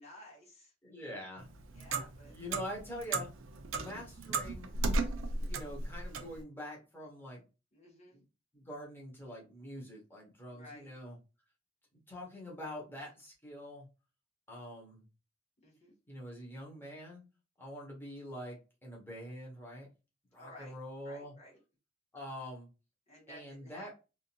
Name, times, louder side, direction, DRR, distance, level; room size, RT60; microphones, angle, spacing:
voice 1, 0.0-0.7 1.7-2.3 7.7-8.2 10.5-10.9 15.6-15.9 20.3-20.8 21.0-21.6 23.1-24.0, left 1 dB, 35° left, -3 dB, 1.8 m, -54 dB
voice 2, 0.8-1.5 2.3-3.3 3.7-5.1 5.4-7.4 8.1-8.2 8.5-11.2 12.1-13.9 14.5-15.1 16.1-17.2 17.6-19.9 20.3-21.3 22.1-22.7 23.3-23.9, equal, 10° left, -3 dB, 1.4 m, -45 dB
Clock, 1.4-6.4, right 3 dB, 80° right, 0.5 m, -36 dB
3.8 x 2.7 x 2.6 m, 0.30 s
head